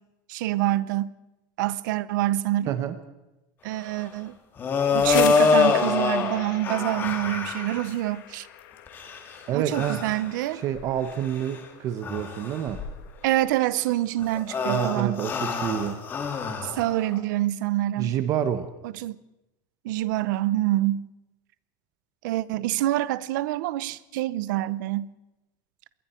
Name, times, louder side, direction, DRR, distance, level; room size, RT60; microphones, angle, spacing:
voice 1, 0.3-1.1 1.6-2.8 3.6-4.4 4.9-8.5 9.5-10.6 13.2-15.2 16.6-18.1 18.8-19.2 19.8-21.1 22.2-25.1, right 15 dB, 70° right, 0.8 m, -26 dB
voice 2, 2.7-3.0 9.5-10.0 10.5-12.8 14.7-16.0 18.0-18.7, right 10 dB, 30° right, 1.1 m, -28 dB
sound 1, 4.6-7.8 8.9-9.3 9.7-10.2 10.8-10.9 11.3-11.5 12.0-13.0 14.2-17.2, left 5 dB, 20° left, 2.2 m, -25 dB
sound 2, 4.7-14.4, left 11 dB, 85° left, 2.4 m, -41 dB
27.0 x 21.5 x 4.5 m
cardioid pair, 180°, 10 cm